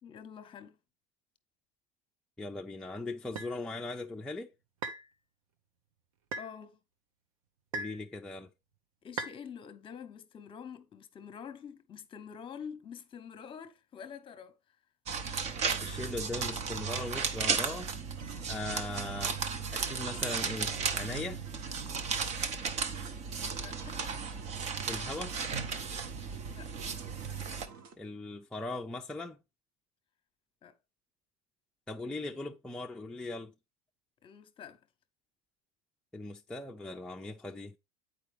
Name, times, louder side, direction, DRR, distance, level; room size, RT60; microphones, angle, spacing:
voice 1, 0.0-0.8 6.4-6.8 9.0-14.8 23.5-24.2 26.5-26.7 30.6-30.8 34.2-34.8, left 7 dB, 30° left, 0.9 m, -47 dB
voice 2, 2.4-4.5 7.7-8.5 15.8-17.9 18.5-19.4 19.7-21.4 24.9-25.4 28.0-29.4 31.9-33.5 36.1-37.7, left 2 dB, 5° left, 0.4 m, -39 dB
sound 1, 3.4-3.5 4.8-5.1 6.3-6.5 7.7-8.0 9.2-9.4, right 3 dB, 90° right, 1.0 m, -37 dB
sound 2, 15.1-27.7, right 5 dB, 40° right, 0.9 m, -35 dB
sound 3, 18.2-22.2 22.5-27.9, right 6 dB, 60° right, 1.3 m, -53 dB
8.0 x 4.8 x 3.3 m
supercardioid pair, 120°, 17 cm